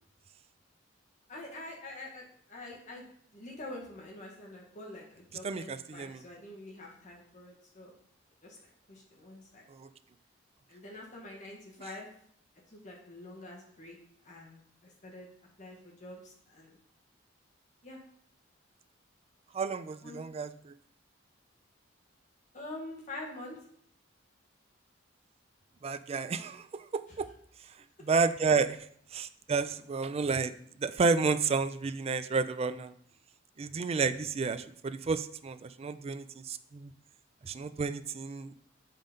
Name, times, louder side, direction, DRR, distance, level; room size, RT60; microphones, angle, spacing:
voice 1, 1.3-7.9 8.4-9.6 10.7-12.1 12.7-14.0 14.2-15.3 15.6-16.8 17.8-18.0 20.0-20.2 22.5-23.6, left 2 dB, 40° left, -1 dB, 1.4 m, -46 dB
voice 2, 5.4-6.2 9.7-9.9 19.5-20.7 25.8-27.3 28.0-28.8 29.1-30.5 30.8-32.9 33.6-36.9 37.4-38.6, right 4 dB, 30° right, 12 dB, 0.3 m, -31 dB
7.4 x 3.8 x 5.2 m, 0.64 s
head